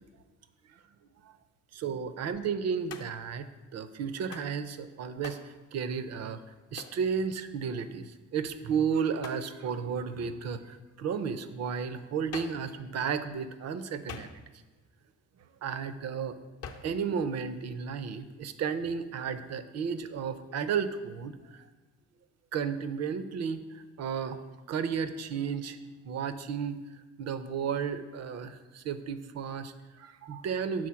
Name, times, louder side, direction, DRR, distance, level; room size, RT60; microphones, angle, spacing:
voice 1, 1.7-3.5 3.7-5.4 5.7-6.4 6.7-14.3 15.6-16.4 16.8-21.6 22.5-24.4 24.7-25.8 26.0-26.8 27.2-30.9, right 6 dB, 60° right, 11 dB, 0.6 m, -33 dB
Hands, 2.9-3.3 4.3-4.6 5.2-5.5 6.8-7.0 9.2-9.5 12.3-12.7 14.1-14.7 16.6-17.0, left 6 dB, 55° left, 0.7 m, -44 dB
6.3 x 3.9 x 5.7 m, 1.2 s
cardioid pair, 90°, 30 cm